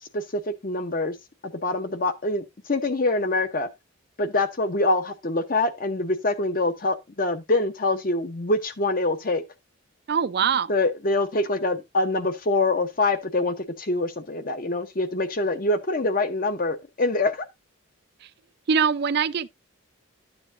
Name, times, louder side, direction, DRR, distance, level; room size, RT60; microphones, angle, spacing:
voice 1, 0.1-1.2 1.4-3.7 4.2-9.4 10.7-17.5, left 2 dB, 40° left, 0.8 m, -25 dB
voice 2, 10.1-10.7 18.7-19.5, right 6 dB, 50° right, 0.4 m, -22 dB
11.0 x 7.1 x 2.5 m
head